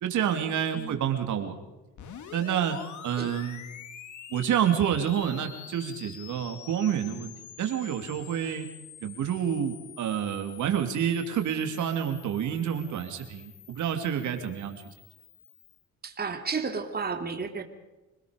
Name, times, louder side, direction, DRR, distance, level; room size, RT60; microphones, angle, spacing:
voice 1, 0.0-1.6 2.3-2.8 3.0-3.6 4.3-8.7 9.0-14.8, right 9 dB, 75° right, 5 dB, 3.0 m, -28 dB
sound 1, 2.0-15.8, left 8 dB, 75° left, 2.5 m, -47 dB
voice 2, 16.0-17.6, right 5 dB, 30° right, 5 dB, 2.8 m, -32 dB
26.0 x 20.0 x 5.3 m, 1.1 s
cardioid pair, 90°, 30 cm